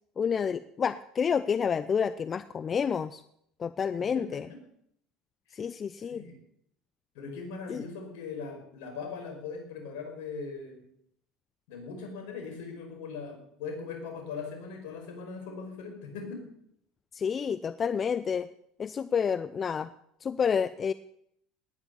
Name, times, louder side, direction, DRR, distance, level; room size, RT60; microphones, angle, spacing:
voice 1, 0.2-3.2 3.6-4.5 5.5-6.2 7.7-7.8 17.1-18.5 18.8-19.9 20.2-20.9, left 6 dB, 35° left, 14 dB, 0.6 m, -29 dB
voice 2, 4.1-4.6 5.5-5.6 6.1-6.4 7.1-10.9 11.7-16.4, left 5 dB, 75° left, 4 dB, 5.2 m, -40 dB
18.5 x 10.0 x 7.0 m, 0.70 s
hypercardioid pair, 75°, 0 cm